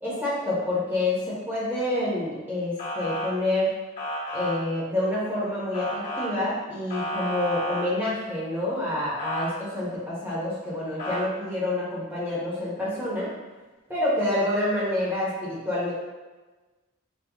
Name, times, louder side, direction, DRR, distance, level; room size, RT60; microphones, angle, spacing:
voice 1, 0.0-3.7 4.3-13.3 13.9-15.9, left 1 dB, 10° right, -9 dB, 1.1 m, -27 dB
Motor vehicle (road) / Siren, 2.8-3.3 4.0-4.5 5.7-6.3 6.9-7.8 9.2-9.5 11.0-11.2, equal, 35° left, 1.3 m, -31 dB
5.2 x 3.1 x 3.0 m, 1.2 s
head